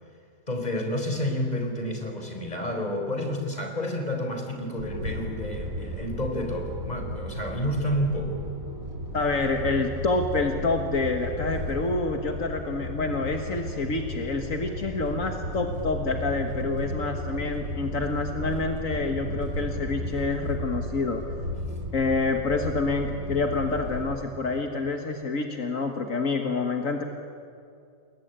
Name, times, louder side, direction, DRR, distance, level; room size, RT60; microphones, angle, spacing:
voice 1, 0.5-8.4, equal, 30° left, 4 dB, 4.1 m, -30 dB
sound 1, 4.8-24.2, equal, 90° right, 4.2 m, -34 dB
voice 2, 9.1-21.2 21.9-27.0, left 3 dB, 70° left, 4 dB, 2.0 m, -27 dB
29.0 x 21.5 x 9.1 m, 2.4 s
omnidirectional pair, 1.4 m